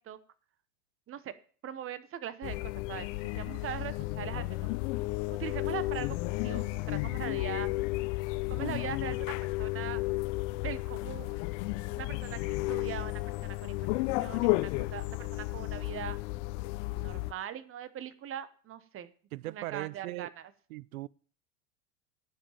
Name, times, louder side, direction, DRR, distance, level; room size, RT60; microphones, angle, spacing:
voice 1, 1.6-4.7 5.4-6.2 6.4-7.7 8.5-10.0 10.6-11.4 12.0-13.8 14.2-16.2 16.9-19.1 19.4-20.5, right 10 dB, 30° right, 1.1 m, -41 dB
sound 1, 2.4-17.3, left 20 dB, 50° left, 0.8 m, -33 dB
voice 2, 19.3-20.3 20.7-21.1, right 18 dB, 65° right, 0.5 m, -39 dB
11.0 x 5.7 x 8.8 m
hypercardioid pair, 95°, 45 cm